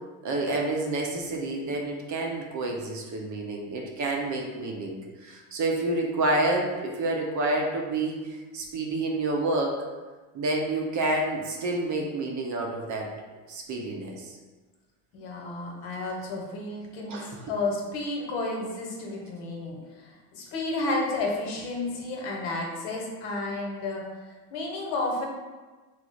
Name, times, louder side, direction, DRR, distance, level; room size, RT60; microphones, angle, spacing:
voice 1, 0.2-9.8 10.3-13.1 13.5-14.4 17.1-17.4, right 2 dB, 40° right, 0 dB, 0.7 m, -29 dB
voice 2, 15.1-17.2 17.5-24.2 24.5-25.2, left 2 dB, 60° left, -1 dB, 1.0 m, -31 dB
3.1 x 2.0 x 3.9 m, 1.3 s
supercardioid pair, 95°, 45 cm